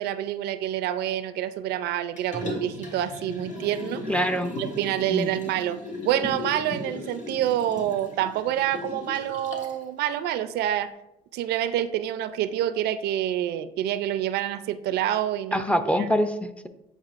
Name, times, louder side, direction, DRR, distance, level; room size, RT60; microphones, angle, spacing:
voice 1, 0.0-4.0 4.6-5.8 6.0-10.9 11.3-15.6 16.0-16.1, right 11 dB, 75° right, 12 dB, 0.4 m, -27 dB
Liquid, 2.2-9.8 10.3-10.4, left 2 dB, 45° left, 1.5 m, -37 dB
voice 2, 4.1-4.5 5.1-5.4 15.5-16.7, equal, 5° left, 8 dB, 0.4 m, -24 dB
8.7 x 5.1 x 2.5 m, 0.89 s
cardioid pair, 110°, 17 cm